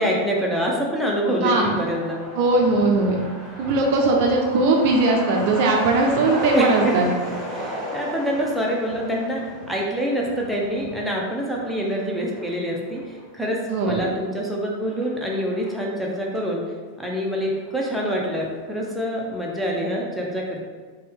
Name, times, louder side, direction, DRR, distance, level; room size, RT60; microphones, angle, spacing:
voice 1, 0.0-2.2 6.5-6.9 7.5-9.4 9.7-16.6 17.0-20.6, equal, ahead, -3 dB, 0.6 m, -25 dB
Truck, 1.4-16.6 16.9-17.0 17.2-18.1 18.4-18.5 18.9-19.2, equal, 15° right, 1.2 m, -36 dB
voice 2, 1.4-1.8 2.4-3.2 3.6-7.1 13.7-14.0, right 2 dB, 50° right, 1 dB, 0.5 m, -19 dB
4.1 x 2.3 x 3.4 m, 1.5 s
figure-of-eight pair, 90°, 0 cm